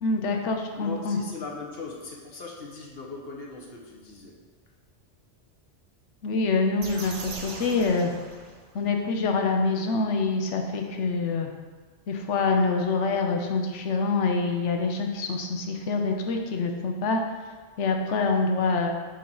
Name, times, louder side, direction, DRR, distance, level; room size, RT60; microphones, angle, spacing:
voice 1, 0.0-1.2 6.2-8.1 8.7-11.5 12.1-17.2 17.8-18.9, left 3 dB, 80° left, 3 dB, 1.0 m, -25 dB
voice 2, 0.8-4.4, left 4 dB, 60° left, -1 dB, 1.2 m, -39 dB
sound 1, 6.8-8.9, right 3 dB, 85° right, 1.1 m, -40 dB
7.5 x 2.9 x 5.4 m, 1.5 s
omnidirectional pair, 1.2 m